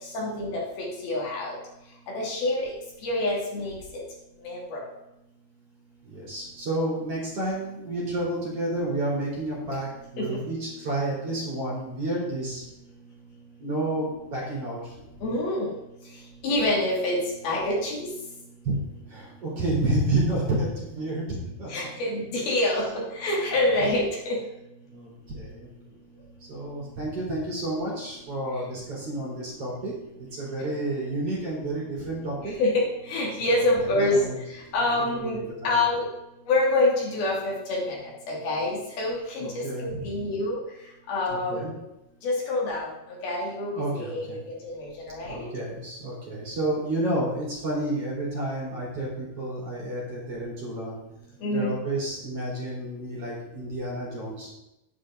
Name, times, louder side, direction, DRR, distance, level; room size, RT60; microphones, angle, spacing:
voice 1, 0.1-0.6 1.0-1.6 2.2-2.7 3.0-3.7 4.4-4.8 10.2-10.3 15.2-15.7 16.4-17.2 17.4-18.1 21.7-24.4 32.4-32.7 33.1-34.3 34.5-35.4 35.6-36.1 36.5-38.0 38.3-40.6 41.1-41.8 42.2-42.9 43.2-45.5 51.4-51.7, left 2 dB, 70° left, -4 dB, 4.6 m, -26 dB
voice 2, 6.1-12.6 13.6-14.9 18.6-18.8 19.1-21.2 21.6-21.9 22.5-22.6 24.9-25.7 26.4-29.9 30.2-32.5 33.4-34.3 35.2-35.8 39.4-40.2 41.3-41.7 43.7-44.4 45.2-51.0 51.5-54.5, right 1 dB, 40° right, -5 dB, 4.1 m, -30 dB
11.0 x 9.5 x 3.8 m, 0.91 s
omnidirectional pair, 4.5 m